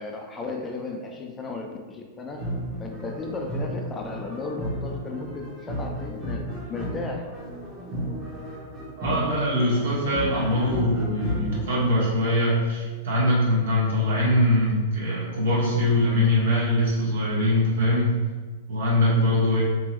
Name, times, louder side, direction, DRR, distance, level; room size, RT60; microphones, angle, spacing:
voice 1, 0.0-2.5 2.8-7.3, left 3 dB, 20° left, 2 dB, 0.5 m, -34 dB
sound 1, 2.3-11.7, equal, 20° right, 1.0 m, -33 dB
voice 2, 9.0-18.1 18.7-19.6, left 1 dB, 70° right, -6 dB, 1.4 m, -22 dB
3.4 x 2.9 x 3.1 m, 1.4 s
figure-of-eight pair, 100°, 0 cm